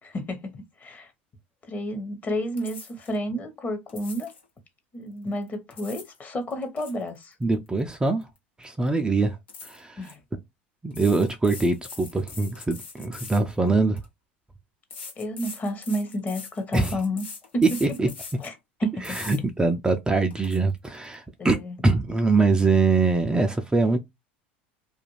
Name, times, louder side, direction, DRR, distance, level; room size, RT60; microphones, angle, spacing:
voice 1, 0.0-1.1 1.7-4.3 4.9-7.4 10.0-10.2 15.2-17.2 17.5-17.6 18.4-18.5 18.8-19.2 21.4-21.8, equal, 30° left, 0.9 m, -31 dB
sound 1, 2.6-3.2 3.9-4.4 5.5-6.2 6.5-8.4 8.6-8.9 9.5-10.1 10.9-14.1 14.9-18.5 19.0-19.4 19.9-20.0 20.3-20.6, left 5 dB, 90° left, 1.1 m, -42 dB
voice 2, 7.4-8.3 8.6-9.4 9.6-10.1 10.8-14.0 16.7-17.0 17.8-18.1 19.0-21.6 21.8-24.0, right 3 dB, 15° right, 0.4 m, -23 dB
2.5 x 2.2 x 3.0 m
hypercardioid pair, 85°, 6 cm